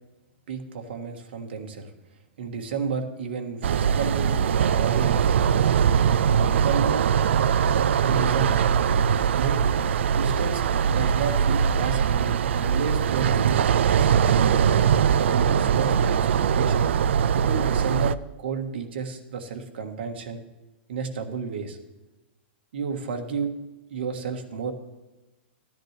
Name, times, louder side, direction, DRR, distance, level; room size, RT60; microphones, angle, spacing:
voice 1, 0.5-1.9 2.4-5.7 6.2-7.0 8.0-8.7 9.3-9.6 10.1-10.6 10.9-14.7 15.2-16.9 17.3-20.4 20.9-21.8 22.7-23.5 23.9-24.7, right 5 dB, 60° right, 4 dB, 1.5 m, -32 dB
sound 1, 3.6-18.2, right 7 dB, 75° right, 0.4 m, -21 dB
15.0 x 10.5 x 3.3 m, 1.1 s
supercardioid pair, 175°, 6 cm